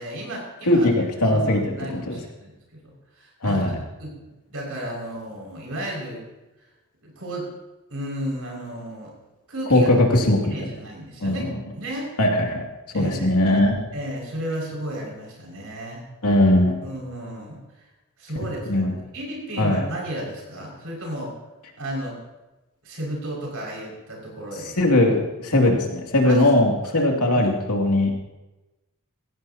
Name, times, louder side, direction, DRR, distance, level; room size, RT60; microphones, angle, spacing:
voice 1, 0.0-0.9 1.3-4.2 4.5-6.3 7.0-7.5 7.9-9.1 9.5-9.9 10.4-11.4 11.7-12.1 12.9-13.4 13.9-16.1 16.8-17.8 18.2-18.8 19.1-21.3 21.8-22.2 22.8-24.8 26.2-26.5 26.8-27.5, right 1 dB, 70° right, -3 dB, 5.9 m, -33 dB
voice 2, 0.7-1.7 2.1-2.2 3.4-3.8 9.7-10.5 11.2-11.4 12.2-12.6 12.9-13.8 16.2-16.7 18.7-18.9 19.6-19.8 24.6-28.1, left 1 dB, 90° left, 0 dB, 2.7 m, -19 dB
17.0 x 15.5 x 2.9 m, 1.1 s
head